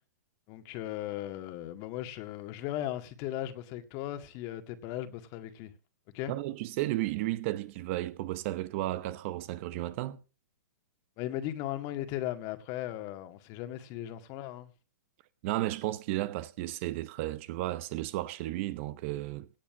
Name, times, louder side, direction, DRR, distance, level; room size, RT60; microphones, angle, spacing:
voice 1, 0.5-5.7 6.1-6.3 11.2-14.7, left 13 dB, 35° left, 1.9 m, -37 dB
voice 2, 6.3-10.2 15.4-19.5, right 16 dB, 45° right, 0.9 m, -33 dB
17.0 x 8.6 x 6.0 m
hypercardioid pair, 135°, 10 cm